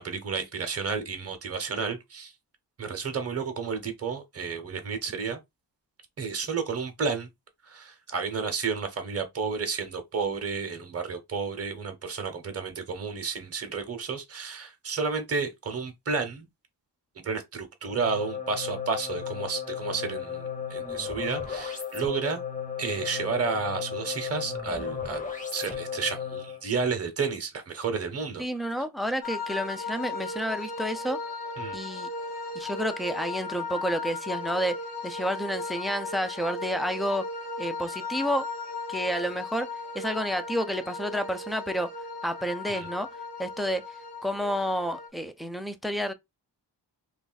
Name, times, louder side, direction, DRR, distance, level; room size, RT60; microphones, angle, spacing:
voice 1, 0.0-2.3 2.8-5.4 6.2-7.3 7.6-16.5 17.2-22.4 22.8-25.2 25.5-28.4 31.6-31.7 42.7-42.9, right 5 dB, 35° right, 0.8 m, -31 dB
sound 1, 17.9-26.7, left 7 dB, 20° left, 0.8 m, -35 dB
voice 2, 28.4-31.2 31.7-32.1 32.6-34.8 35.0-37.3 37.6-38.5 38.9-39.7 39.9-41.9 42.2-43.1 43.4-43.9 44.2-46.1, equal, ahead, 0.4 m, -30 dB
sound 2, 29.2-45.1, left 3 dB, 60° left, 1.2 m, -36 dB
2.5 x 2.4 x 3.9 m
wide cardioid pair, 105°, 44 cm